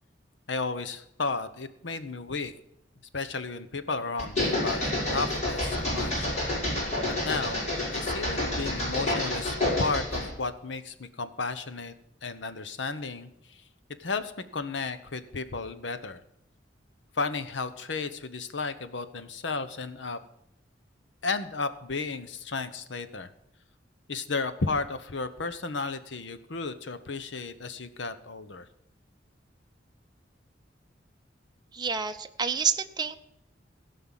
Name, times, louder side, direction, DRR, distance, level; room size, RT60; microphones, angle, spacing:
voice 1, 0.5-2.5 3.1-6.3 7.1-7.6 7.9-11.9 12.2-13.6 14.0-16.2 17.1-20.2 21.2-23.3 24.1-28.7, left 4 dB, 70° left, 11 dB, 1.0 m, -33 dB
sound 1, 4.2-10.3, left 1 dB, 40° left, 5.8 m, -29 dB
voice 2, 31.7-33.2, right 6 dB, 25° right, 6 dB, 0.6 m, -28 dB
16.5 x 5.7 x 7.4 m, 0.78 s
head